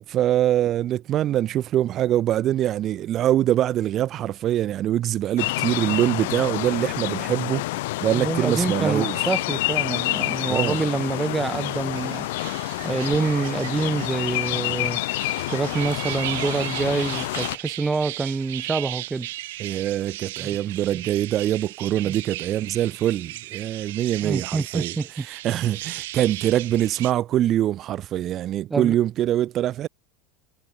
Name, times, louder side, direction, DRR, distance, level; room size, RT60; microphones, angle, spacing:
voice 1, 0.1-7.6 8.0-9.3 10.5-10.8 19.6-24.9 25.2-29.9, right 12 dB, 40° right, 1.3 m, -24 dB
sound 1, 5.4-17.6, left 19 dB, 80° left, 0.5 m, -28 dB
voice 2, 8.1-12.3 12.8-15.0 15.5-19.3 20.4-20.5 22.0-22.1 24.2-25.3 28.7-28.9, right 4 dB, 15° right, 1.5 m, -26 dB
sound 2, 10.3-27.1, right 18 dB, 90° right, 6.3 m, -37 dB
supercardioid pair, 140°, 0 cm